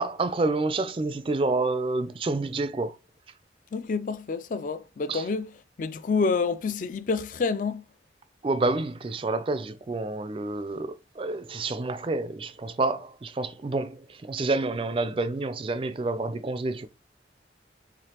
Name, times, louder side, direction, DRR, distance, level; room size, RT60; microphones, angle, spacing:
voice 1, 0.0-3.0 5.1-5.3 8.4-16.9, right 3 dB, 30° right, 0.3 m, -28 dB
voice 2, 3.7-5.5 5.8-7.8, left 4 dB, 45° left, 0.3 m, -28 dB
4.9 x 3.6 x 2.9 m
head